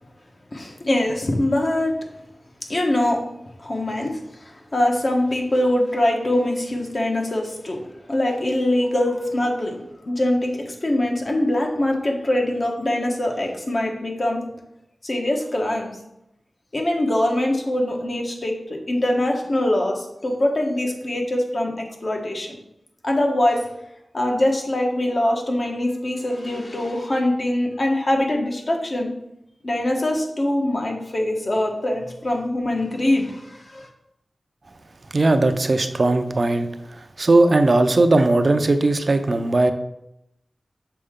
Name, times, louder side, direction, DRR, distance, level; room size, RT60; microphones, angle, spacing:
voice 1, 0.5-2.0 2.7-3.2 3.6-7.8 8.1-9.8 10.1-14.4 15.0-16.0 16.7-22.5 23.0-23.7 24.1-29.1 29.6-33.9, left 1 dB, 50° left, 1 dB, 1.1 m, -23 dB
voice 2, 35.1-36.7 37.2-39.7, right 2 dB, 55° right, 8 dB, 0.5 m, -18 dB
6.7 x 4.4 x 3.6 m, 0.83 s
wide cardioid pair, 65°, 0 cm